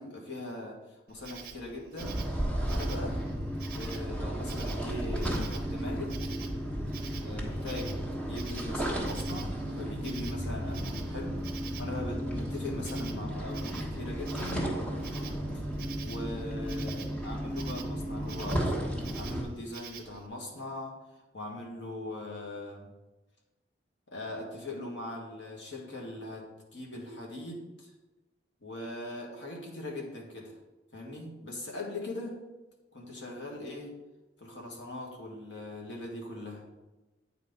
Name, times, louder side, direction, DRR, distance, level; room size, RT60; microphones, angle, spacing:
voice 1, 0.0-2.3 2.7-3.3 3.7-6.3 7.2-8.0 8.3-11.4 11.8-14.7 16.0-18.8 19.1-21.0 21.3-22.9 24.1-27.9 28.6-30.6 30.9-32.4 32.9-34.0 34.4-36.7, left 2 dB, 80° left, 0 dB, 1.8 m, -40 dB
Insect, 1.1-20.3, right 8 dB, 55° right, 0.7 m, -49 dB
sound 1, 2.0-19.4, equal, 5° left, 1.1 m, -34 dB
8.8 x 4.2 x 5.2 m, 1.1 s
head